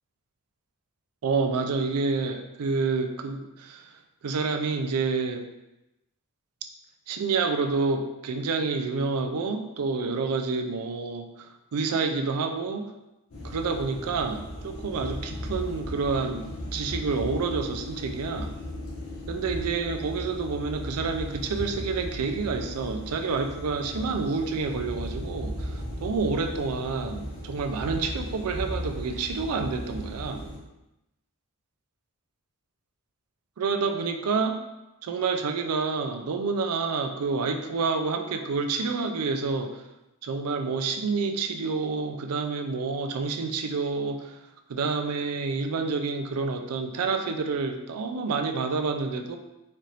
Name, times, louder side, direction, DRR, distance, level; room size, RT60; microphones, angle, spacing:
voice 1, 1.2-3.9 4.2-5.5 7.1-12.9 13.4-18.5 19.3-30.4 33.6-34.6 35.0-39.8 40.2-44.4 44.7-49.4, right 4 dB, 90° right, 6 dB, 0.4 m, -28 dB
sound 1, 13.3-30.6, equal, 70° left, 1.1 m, -36 dB
4.2 x 2.5 x 3.2 m, 0.95 s
head